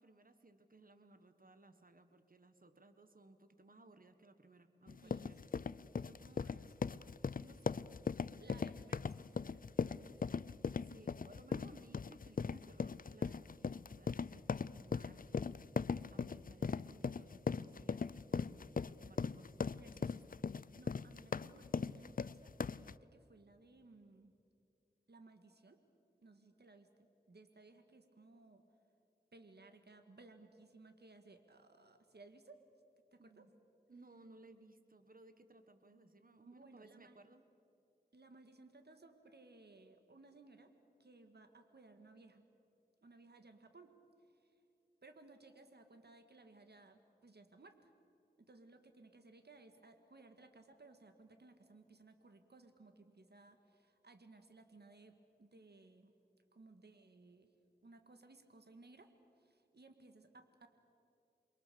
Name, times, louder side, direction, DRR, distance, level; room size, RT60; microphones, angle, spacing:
voice 1, 0.0-5.4 10.6-15.6 16.1-18.5 18.8-19.5 33.2-33.5 33.9-37.4, right 2 dB, 55° right, 9 dB, 1.5 m, -62 dB
sound 1, 4.9-22.9, left 5 dB, 55° left, 0.5 m, -39 dB
voice 2, 5.0-5.7 6.0-6.8 7.4-7.7 8.4-10.6 19.7-24.3 25.1-25.8 26.2-28.6 29.3-32.6 33.1-33.5 36.5-37.1 38.1-40.7 41.0-42.5 43.0-43.9 44.3-44.5 45.0-47.9 48.4-56.1 56.5-57.5 57.8-59.1 59.4-60.7, right 3 dB, 75° right, 7 dB, 1.9 m, -61 dB
28.5 x 23.0 x 6.9 m, 2.6 s
wide cardioid pair, 40°, 17 cm